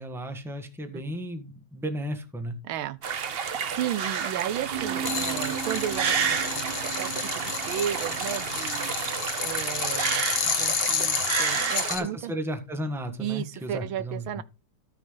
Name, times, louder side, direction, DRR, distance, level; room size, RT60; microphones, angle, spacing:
voice 1, 0.0-2.6 11.9-14.4, equal, ahead, 1.3 m, -34 dB
voice 2, 2.6-3.0 3.5-8.9 9.4-12.3 13.2-14.4, right 11 dB, 85° right, 1.5 m, -34 dB
sound 1, 3.0-12.0, right 7 dB, 65° right, 0.5 m, -30 dB
sound 2, 4.7-10.1, right 7 dB, 30° right, 1.0 m, -38 dB
sound 3, 5.0-12.0, left 7 dB, 60° left, 1.8 m, -30 dB
13.5 x 6.3 x 4.0 m
omnidirectional pair, 2.2 m